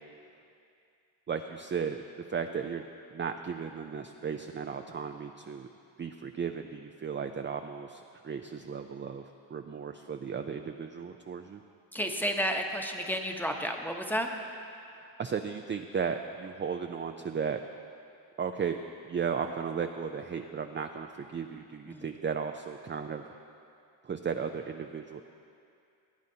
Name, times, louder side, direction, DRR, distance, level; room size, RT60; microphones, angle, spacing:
voice 1, 1.3-2.0 2.3-2.8 3.1-5.7 6.0-9.2 9.5-11.6 14.9-17.6 18.4-18.8 19.1-23.2 24.0-25.2, right 6 dB, 25° right, 5 dB, 0.4 m, -35 dB
voice 2, 11.9-14.3 21.9-22.1, equal, 5° left, 3 dB, 0.9 m, -31 dB
17.0 x 9.1 x 2.8 m, 2.5 s
cardioid pair, 60°, 46 cm